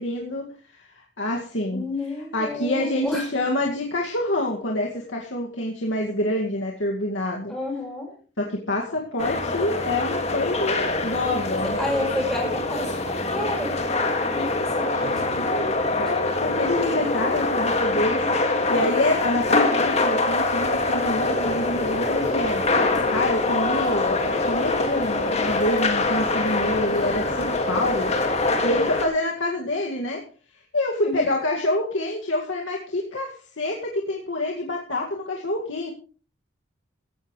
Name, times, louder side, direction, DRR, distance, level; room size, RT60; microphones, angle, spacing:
voice 1, 0.0-1.8 2.3-7.5 8.4-11.8 15.4-30.3 30.7-35.9, left 1 dB, 75° left, -1 dB, 2.1 m, -27 dB
voice 2, 1.7-3.2 7.5-8.1 11.4-13.8 14.3-16.0 31.0-31.3, left 1 dB, ahead, -2 dB, 5.0 m, -31 dB
sound 1, 9.2-29.1, left 2 dB, 35° left, 2.1 m, -24 dB
Guitar, 14.9-16.6, equal, 65° right, 5.6 m, -47 dB
Rain, 20.5-28.5, left 4 dB, 20° right, 6.2 m, -35 dB
16.0 x 16.0 x 3.2 m, 0.38 s
head